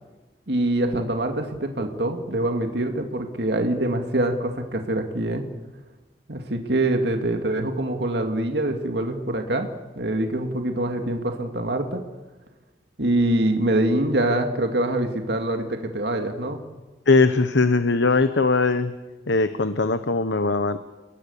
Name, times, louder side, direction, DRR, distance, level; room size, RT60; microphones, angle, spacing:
voice 1, 0.5-5.4 6.3-9.7 10.0-12.0 13.0-16.6, right 1 dB, 65° right, 4 dB, 2.3 m, -24 dB
voice 2, 17.1-18.9 19.3-20.8, left 3 dB, 80° left, 10 dB, 1.0 m, -20 dB
29.5 x 20.5 x 7.2 m, 1.2 s
head